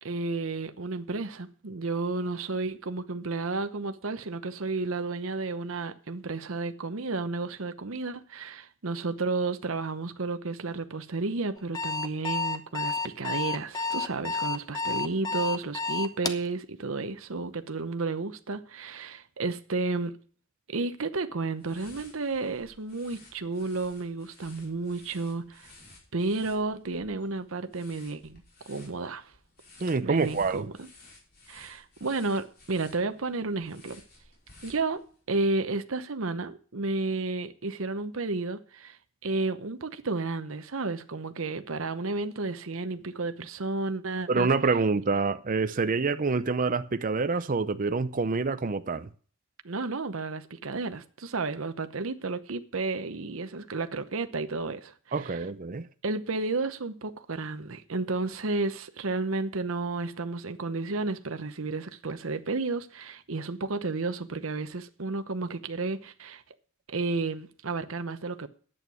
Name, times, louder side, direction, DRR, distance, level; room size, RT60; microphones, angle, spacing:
voice 1, 0.0-20.1 20.7-25.7 26.1-29.3 30.0-30.9 31.5-34.0 34.6-44.5 49.6-55.4 56.0-66.4 66.9-68.5, right 3 dB, 70° right, 0.9 m, -32 dB
Alarm, 11.6-16.5, left 4 dB, 20° left, 0.9 m, -30 dB
sound 1, 21.6-35.3, left 2 dB, 50° left, 5.2 m, -55 dB
voice 2, 29.8-30.7 44.3-49.1 55.1-55.9, right 4 dB, 40° right, 0.6 m, -27 dB
11.0 x 8.9 x 6.2 m
head